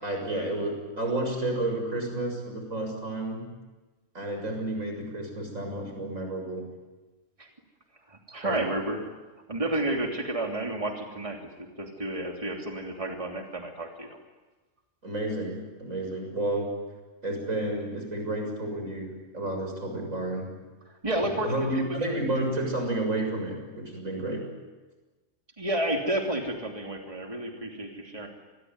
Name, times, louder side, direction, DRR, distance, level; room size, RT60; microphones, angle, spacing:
voice 1, 0.0-3.5 4.1-6.7 8.4-8.7 15.0-16.7 17.2-20.5 21.4-24.5, right 1 dB, 90° right, 3 dB, 7.1 m, -31 dB
voice 2, 8.1-9.0 9.5-14.2 21.0-22.5 25.6-28.3, right 1 dB, 25° right, 2 dB, 3.1 m, -31 dB
28.5 x 21.0 x 9.6 m, 1.2 s
omnidirectional pair, 1.3 m